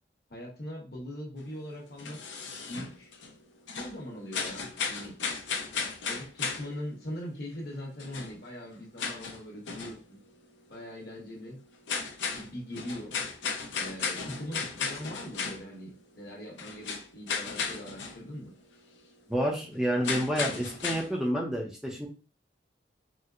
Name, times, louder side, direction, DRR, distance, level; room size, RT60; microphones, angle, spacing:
voice 1, 0.3-2.2 2.7-3.1 3.8-5.1 6.0-10.2 10.7-11.6 12.3-13.2 13.7-18.5, equal, 60° left, -2 dB, 1.2 m, -41 dB
sound 1, 1.4-3.4 3.7-6.8 7.7-7.8 8.0-10.0 10.3-10.4 10.7-10.8 11.2-11.3 11.7-15.9 16.2-18.2 18.5-18.6 18.9-19.0 20.0-21.1, left 5 dB, 85° left, 0.6 m, -35 dB
voice 2, 19.3-22.1, equal, 5° right, -2 dB, 0.5 m, -29 dB
4.3 x 2.0 x 2.4 m, 0.35 s
head